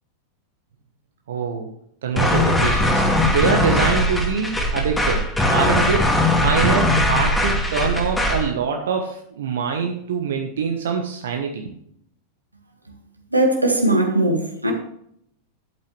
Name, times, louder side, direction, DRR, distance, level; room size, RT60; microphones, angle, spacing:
voice 1, 1.3-1.7 2.0-3.0 3.3-6.1 6.4-11.7, right 6 dB, 60° right, 1.2 m, -24 dB
sound 1, 2.2-8.5, left 1 dB, 10° left, 2.1 m, -20 dB
voice 2, 13.3-14.7, right 1 dB, 85° right, 1.9 m, -19 dB
12.0 x 8.5 x 3.2 m
figure-of-eight pair, 90°, 0 cm